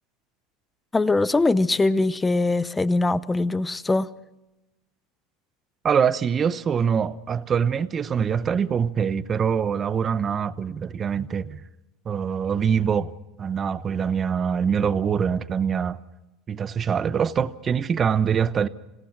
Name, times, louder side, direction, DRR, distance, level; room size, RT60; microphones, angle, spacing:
voice 1, 0.9-4.1, left 2 dB, 10° left, 0.7 m, -22 dB
voice 2, 5.8-11.6 12.0-13.1 13.4-16.0 16.5-18.7, right 7 dB, 25° right, 0.8 m, -24 dB
26.5 x 17.5 x 6.0 m
supercardioid pair, 135°, 0 cm